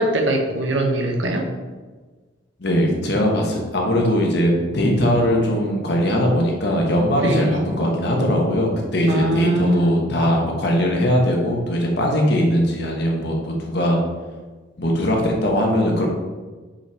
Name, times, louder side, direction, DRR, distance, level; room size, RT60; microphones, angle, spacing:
voice 1, 0.0-1.5 7.2-7.7 9.1-9.9, right 1 dB, 80° right, 3 dB, 1.0 m, -21 dB
voice 2, 2.6-14.0 14.8-16.1, equal, 60° left, 0 dB, 1.3 m, -20 dB
5.6 x 5.4 x 3.5 m, 1.3 s
head